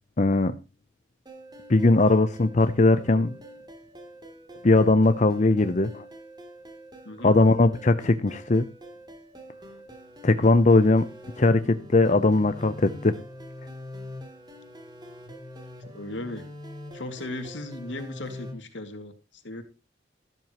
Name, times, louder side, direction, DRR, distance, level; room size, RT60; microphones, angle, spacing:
voice 1, 0.2-0.5 1.7-3.3 4.6-6.0 7.2-8.6 10.2-11.1 11.4-13.1, left 2 dB, 40° left, 0.7 m, -20 dB
sound 1, 1.3-18.5, equal, 25° right, 3.0 m, -44 dB
voice 2, 7.0-7.4 15.9-16.4 16.9-19.6, left 1 dB, 80° left, 2.3 m, -37 dB
13.5 x 12.5 x 3.0 m
head